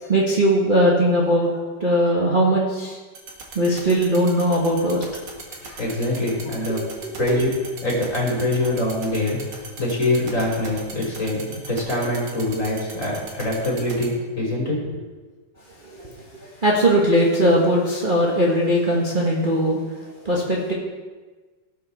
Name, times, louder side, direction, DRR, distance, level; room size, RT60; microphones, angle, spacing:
voice 1, 0.0-1.5 1.8-3.0 3.5-5.0 5.6-5.8 7.0-7.5 15.8-16.2 16.6-19.8 20.2-20.7, equal, 30° right, -4 dB, 1.4 m, -19 dB
sound 1, 3.2-14.1, right 5 dB, 80° right, 2.4 m, -37 dB
voice 2, 5.8-6.8 7.2-7.5 7.8-9.4 9.8-14.8, left 1 dB, 45° left, -3 dB, 3.6 m, -24 dB
18.0 x 6.9 x 4.1 m, 1.3 s
omnidirectional pair, 2.0 m